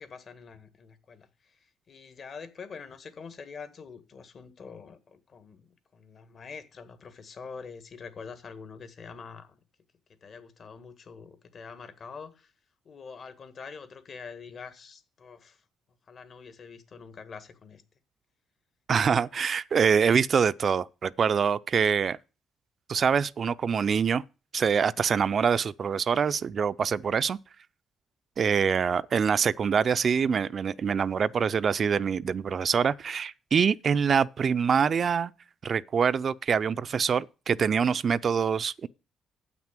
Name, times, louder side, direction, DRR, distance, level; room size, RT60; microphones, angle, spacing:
voice 1, 0.0-9.6 10.1-12.5 12.8-15.6 16.1-17.8, left 5 dB, 50° left, 1.5 m, -45 dB
voice 2, 18.9-22.2 22.9-24.2 24.5-27.4 28.4-35.3 35.6-38.9, right 6 dB, 50° right, 0.4 m, -25 dB
8.2 x 6.1 x 7.3 m
cardioid pair, 90°, 0 cm